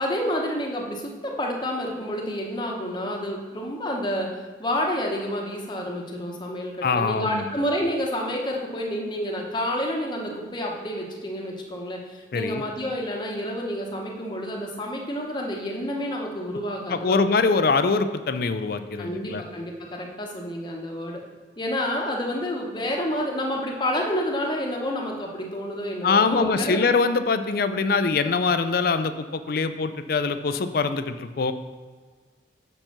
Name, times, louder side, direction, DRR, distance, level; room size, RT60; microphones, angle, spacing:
voice 1, 0.0-17.2 19.0-21.2 21.6-26.8, equal, 25° left, 0 dB, 1.0 m, -29 dB
voice 2, 6.8-7.5 12.3-12.6 16.9-19.4 26.0-31.5, left 4 dB, 55° left, 10 dB, 0.4 m, -23 dB
6.5 x 4.4 x 5.9 m, 1.5 s
head